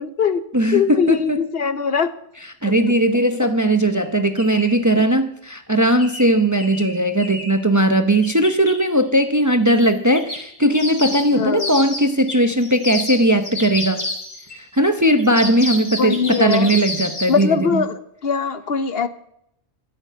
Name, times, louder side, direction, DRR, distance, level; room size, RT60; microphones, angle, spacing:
voice 1, 0.0-0.4 0.7-2.1 11.3-11.8 16.0-16.7 17.3-19.1, left 6 dB, 60° left, 12 dB, 1.0 m, -21 dB
voice 2, 0.5-1.4 2.6-14.0 14.5-17.8, right 1 dB, 20° right, 8 dB, 0.7 m, -18 dB
sound 1, 3.9-4.0 4.4-4.8 6.0-7.6 8.2-8.8 9.7-9.8 10.2-14.6 15.2-17.5, left 1 dB, 45° left, 2.6 m, -30 dB
13.0 x 6.6 x 9.2 m, 0.74 s
omnidirectional pair, 1.2 m